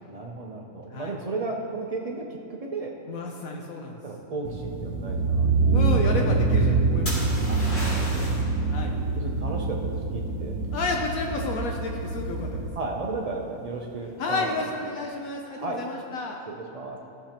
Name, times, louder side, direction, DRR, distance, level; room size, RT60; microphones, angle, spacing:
voice 1, 0.1-2.9 4.0-5.9 7.5-8.8 9.2-10.6 12.7-14.7 15.5-15.8 16.5-17.0, right 3 dB, 70° right, 0 dB, 0.3 m, -34 dB
voice 2, 3.1-4.0 5.7-7.4 8.7-8.9 10.7-12.7 14.2-16.4, left 3 dB, 70° left, 1 dB, 1.1 m, -31 dB
sound 1, 4.4-12.7, right 4 dB, 90° right, 1.2 m, -25 dB
sound 2, 7.1-8.5 12.2-12.6, equal, 55° left, 2.8 m, -34 dB
15.0 x 6.8 x 2.9 m, 2.9 s
omnidirectional pair, 1.5 m